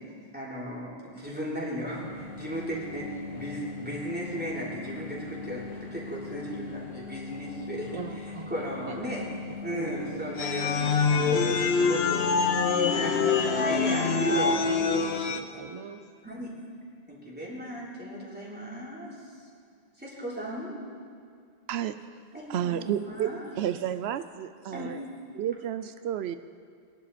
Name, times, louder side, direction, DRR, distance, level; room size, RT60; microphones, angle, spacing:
voice 1, 0.3-9.2 9.6-12.3 12.6-14.6 16.2-16.5 17.1-19.1 20.0-20.8 22.3-23.5 24.7-24.9, equal, 10° right, -7 dB, 3.6 m, -36 dB
sound 1, 1.8-15.4, left 3 dB, 30° left, 4.1 m, -41 dB
voice 2, 7.9-8.5 8.9-9.0 9.7-10.2 11.3-12.1 14.7-16.0, right 5 dB, 45° right, 5 dB, 0.5 m, -41 dB
sound 2, 10.4-15.4, left 5 dB, 90° left, 1.1 m, -25 dB
voice 3, 22.5-25.0 25.3-26.4, right 10 dB, 90° right, 12 dB, 0.8 m, -31 dB
21.0 x 11.0 x 4.2 m, 2.3 s
omnidirectional pair, 1.0 m